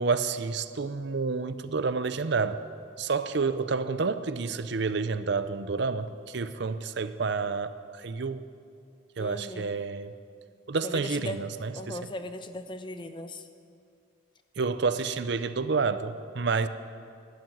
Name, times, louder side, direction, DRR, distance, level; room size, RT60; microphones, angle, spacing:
voice 1, 0.0-2.6 3.0-8.4 9.2-10.1 10.7-12.1 14.6-16.7, right 4 dB, 60° right, 12 dB, 0.6 m, -29 dB
voice 2, 9.2-9.8 10.8-11.4 11.7-13.5, left 1 dB, 25° left, 8 dB, 0.8 m, -38 dB
12.0 x 12.0 x 9.1 m, 2.4 s
head